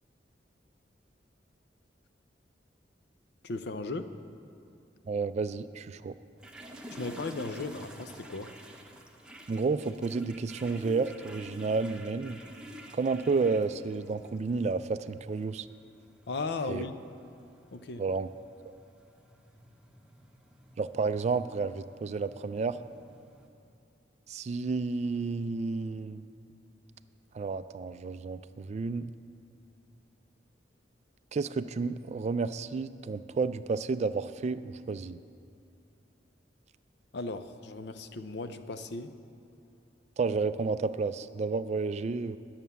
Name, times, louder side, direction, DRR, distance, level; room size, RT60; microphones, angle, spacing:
voice 1, 3.4-4.1 6.9-8.5 16.3-17.0 17.7-18.0 37.1-39.1, left 3 dB, 65° left, 10 dB, 0.6 m, -36 dB
voice 2, 5.1-6.1 9.5-12.4 12.9-15.7 16.7-16.9 18.0-18.3 20.8-22.8 24.3-26.2 27.3-29.1 31.3-35.2 40.2-42.4, right 4 dB, 40° right, 13 dB, 0.3 m, -31 dB
sound 1, 6.4-23.5, equal, 5° right, 0.8 m, -50 dB
11.0 x 7.2 x 6.8 m, 2.7 s
head